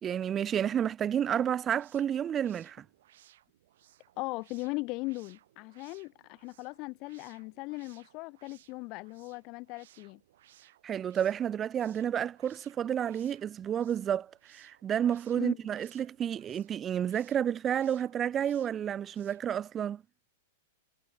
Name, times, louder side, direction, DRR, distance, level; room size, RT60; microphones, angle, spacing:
voice 1, 0.0-2.8 10.8-20.0, right 9 dB, 25° right, 0.4 m, -30 dB
sound 1, 1.5-19.6, right 13 dB, 65° right, 7.1 m, -63 dB
voice 2, 4.2-10.2 15.4-15.6, left 25 dB, 45° left, 0.9 m, -38 dB
hypercardioid pair, 120°, 0 cm